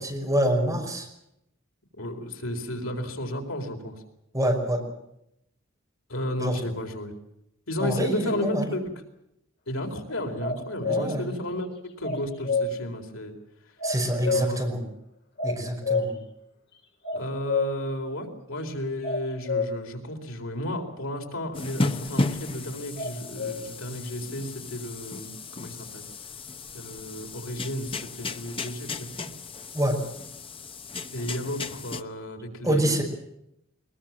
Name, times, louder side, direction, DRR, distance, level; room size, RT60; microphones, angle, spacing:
voice 1, 0.1-1.1 4.3-4.8 6.4-6.6 7.8-8.6 10.8-11.3 13.8-14.8 15.4-16.1 29.7-30.0 32.6-33.0, right 1 dB, 15° right, 1 dB, 5.7 m, -26 dB
voice 2, 1.9-4.0 6.1-7.1 7.7-8.8 9.7-11.7 12.0-13.4 13.6-13.8 14.1-14.7 17.1-26.0 26.7-29.3 31.1-33.0, left 1 dB, 85° left, 3 dB, 4.3 m, -33 dB
sound 1, 10.4-11.1 12.0-12.7 13.8-14.6 15.4-16.1 17.0-17.7 19.0-19.7 23.0-23.6, left 4 dB, 55° left, 5.3 m, -27 dB
sound 2, 21.5-32.0, left 2 dB, 25° left, 1.0 m, -34 dB
22.0 x 21.5 x 7.5 m, 0.80 s
head